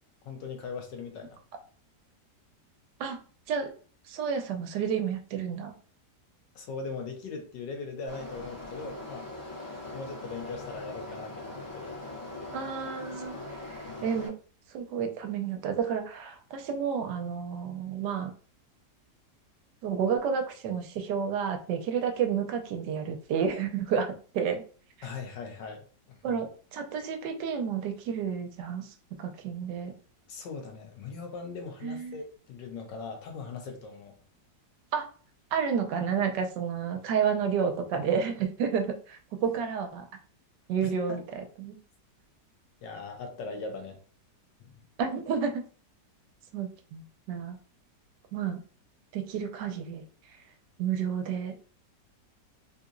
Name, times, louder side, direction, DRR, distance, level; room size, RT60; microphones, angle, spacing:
voice 1, 0.2-1.4 6.5-9.3 9.9-12.0 13.9-14.0 25.0-26.4 30.3-34.2 40.8-41.2 42.8-44.0 44.8-44.9, left 4 dB, 80° left, 4 dB, 1.5 m, -40 dB
voice 2, 4.1-5.7 12.5-13.4 13.7-14.3 14.7-18.3 19.8-24.6 26.2-29.9 31.8-32.2 34.9-35.1 35.5-40.1 40.7-41.8 45.0-45.7 46.5-47.6 48.3-48.6 49.1-50.0 50.8-51.5, right 7 dB, 80° right, 5 dB, 1.2 m, -30 dB
sound 1, 8.1-14.3, left 2 dB, 40° left, 1.3 m, -41 dB
3.7 x 2.8 x 2.5 m, 0.41 s
omnidirectional pair, 1.9 m